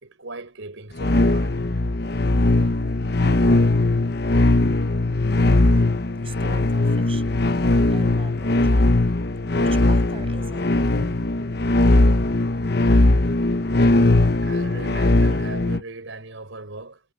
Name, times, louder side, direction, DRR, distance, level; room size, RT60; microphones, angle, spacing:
voice 1, 0.0-1.5 10.9-11.7 14.4-17.0, right 2 dB, 90° right, 4.8 m, -38 dB
sound 1, 1.0-15.8, left 2 dB, 55° left, 1.0 m, -19 dB
voice 2, 5.7-9.2 9.6-11.0, right 3 dB, 30° right, 7.4 m, -43 dB
head